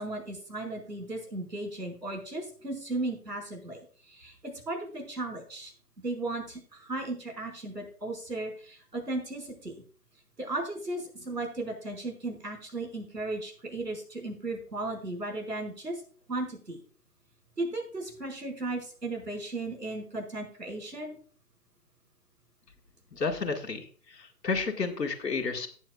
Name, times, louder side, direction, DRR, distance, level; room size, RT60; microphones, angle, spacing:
voice 1, 0.0-3.8 4.1-5.7 6.0-9.7 10.4-16.0 16.3-16.8 17.6-21.2, right 2 dB, 90° right, 1 dB, 5.4 m, -36 dB
voice 2, 23.1-25.7, left 4 dB, 80° left, 3 dB, 1.9 m, -31 dB
18.0 x 7.4 x 2.3 m, 0.44 s
figure-of-eight pair, 135°, 48 cm